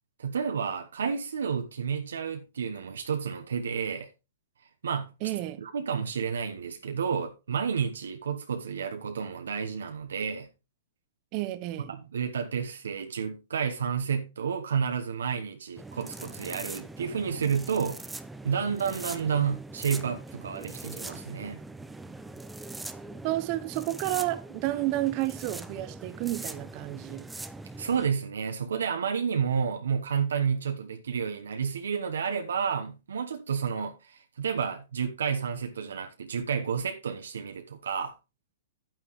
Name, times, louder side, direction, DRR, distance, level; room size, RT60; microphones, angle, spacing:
voice 1, 0.2-4.1 4.8-5.1 5.6-10.5 11.9-18.1 18.4-21.6 27.8-38.1, right 6 dB, 80° right, 1.0 m, -30 dB
voice 2, 5.2-5.6 11.3-11.9 23.2-27.3, right 17 dB, 40° right, 0.8 m, -31 dB
sound 1, 15.8-28.1, right 2 dB, 5° right, 0.6 m, -42 dB
9.4 x 9.0 x 3.1 m
hypercardioid pair, 130°, 0 cm